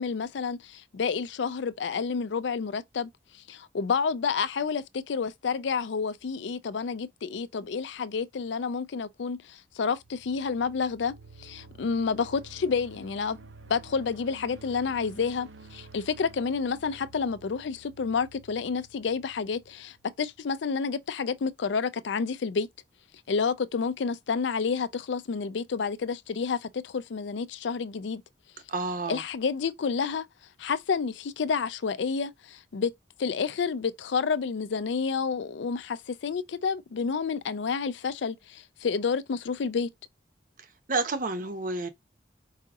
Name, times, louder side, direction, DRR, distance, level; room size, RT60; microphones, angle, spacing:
voice 1, 0.0-3.1 3.5-11.1 11.4-13.4 13.7-22.7 23.3-28.2 29.1-30.3 30.6-32.9 33.2-39.9, left 5 dB, 75° left, 0.4 m, -29 dB
sound 1, 9.7-20.5, right 3 dB, 85° right, 0.7 m, -51 dB
voice 2, 28.7-29.2 40.9-41.9, right 3 dB, 45° right, 0.8 m, -29 dB
4.8 x 2.8 x 3.5 m
head